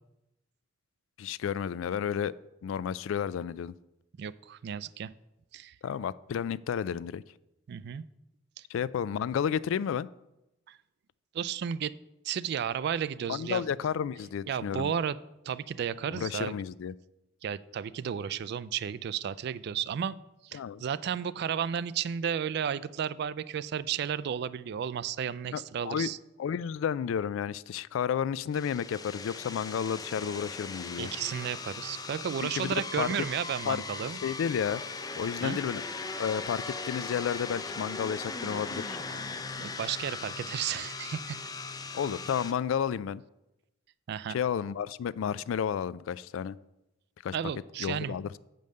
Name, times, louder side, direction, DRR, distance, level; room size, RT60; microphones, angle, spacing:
voice 1, 1.2-2.3 2.6-3.7 5.8-7.2 8.7-10.1 13.3-14.9 16.1-16.9 20.5-20.8 25.5-26.1 26.4-31.1 32.4-33.1 33.7-33.8 34.2-34.8 35.2-35.8 36.2-39.0 41.9-43.2 44.3-46.6 47.2-47.4 47.8-48.3, left 8 dB, 75° left, 20 dB, 0.3 m, -31 dB
voice 2, 4.2-5.1 5.5-5.8 7.7-8.0 8.6-8.7 10.7-10.8 11.3-11.9 12.2-13.6 14.5-15.2 15.5-16.6 17.4-20.2 20.4-26.2 31.0-34.2 35.4-35.6 39.6-41.4 44.1-44.4 47.3-48.2, right 8 dB, 55° right, 18 dB, 0.3 m, -33 dB
sound 1, 28.5-42.5, left 4 dB, 20° left, 0.5 m, -39 dB
7.7 x 5.3 x 6.5 m, 0.92 s
head